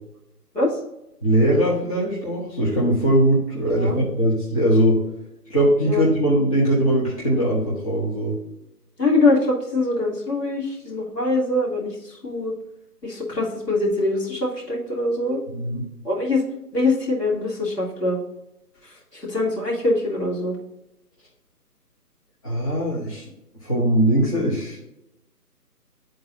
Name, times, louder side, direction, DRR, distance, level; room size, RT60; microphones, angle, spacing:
voice 1, 1.2-5.0 5.5-8.4 15.5-15.8 22.4-23.3 23.6-24.8, right 1 dB, 20° left, -7 dB, 1.0 m, -20 dB
voice 2, 9.0-12.5 13.0-15.4 16.0-16.4 16.7-18.2 18.8-20.6, left 2 dB, 80° left, -3 dB, 2.4 m, -23 dB
10.5 x 3.8 x 2.6 m, 0.89 s
figure-of-eight pair, 155°, 48 cm